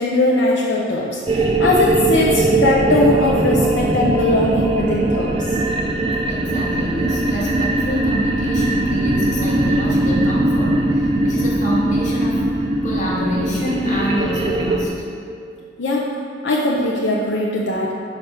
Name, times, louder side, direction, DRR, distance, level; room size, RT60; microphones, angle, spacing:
voice 1, 0.0-5.6 15.8-16.1 16.4-17.9, left 2 dB, 70° left, -3 dB, 0.6 m, -19 dB
sound 1, 1.3-14.9, right 2 dB, 30° right, 0.4 m, -20 dB
voice 2, 6.2-15.0, equal, 40° left, -5 dB, 1.4 m, -26 dB
5.1 x 4.2 x 5.9 m, 2.4 s
head